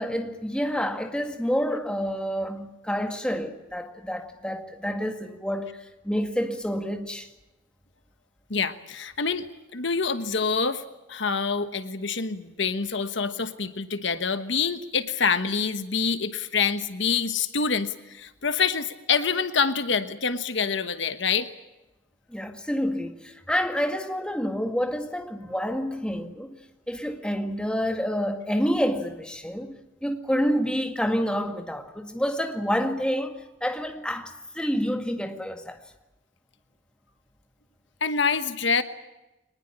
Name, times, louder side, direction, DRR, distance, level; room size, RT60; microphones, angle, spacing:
voice 1, 0.0-7.3 22.3-35.8, equal, 5° left, 1.9 m, -28 dB
voice 2, 8.5-9.5 9.7-10.8 11.1-21.5 38.0-38.8, left 5 dB, 65° left, 1.3 m, -26 dB
24.0 x 20.0 x 8.8 m
head